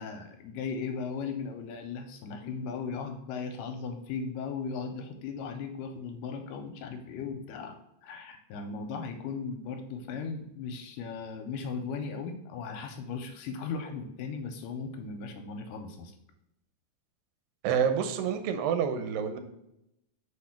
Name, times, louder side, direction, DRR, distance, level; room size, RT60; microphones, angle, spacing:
voice 1, 0.0-7.8 8.0-16.1, left 5 dB, 80° left, 5 dB, 2.2 m, -37 dB
voice 2, 17.6-19.4, right 7 dB, 85° right, 8 dB, 2.4 m, -28 dB
4.9 x 4.3 x 5.7 m, 0.83 s
omnidirectional pair, 4.0 m